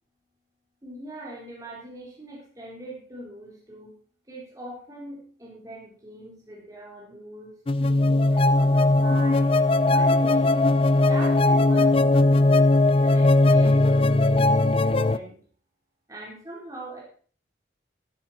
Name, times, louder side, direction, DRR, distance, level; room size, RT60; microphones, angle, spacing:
voice 1, 0.8-4.0 4.3-10.5 11.1-12.7 12.9-15.4 16.1-17.0, right 1 dB, 20° right, -4 dB, 4.2 m, -42 dB
sound 1, 7.7-15.2, left 2 dB, 30° left, 0.4 m, -19 dB
13.0 x 10.5 x 4.4 m, 0.42 s
head